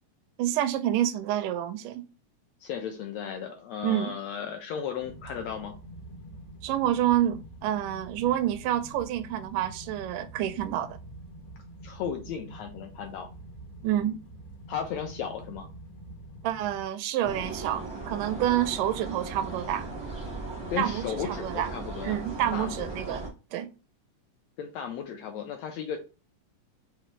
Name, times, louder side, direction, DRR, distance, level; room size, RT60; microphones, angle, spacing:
voice 1, 0.4-2.0 3.8-4.1 6.6-11.0 13.8-14.2 16.4-19.9 20.8-21.7 22.0-23.3 23.5-23.7, right 12 dB, 90° right, 2.1 m, -28 dB
voice 2, 2.6-5.7 11.8-13.3 14.7-15.7 20.7-22.2 22.5-23.0 24.6-26.0, left 7 dB, 80° left, 1.6 m, -35 dB
sound 1, 5.0-16.8, right 1 dB, 65° left, 2.2 m, -46 dB
sound 2, 17.2-23.3, right 3 dB, 35° right, 0.4 m, -37 dB
5.9 x 2.7 x 3.1 m
omnidirectional pair, 3.6 m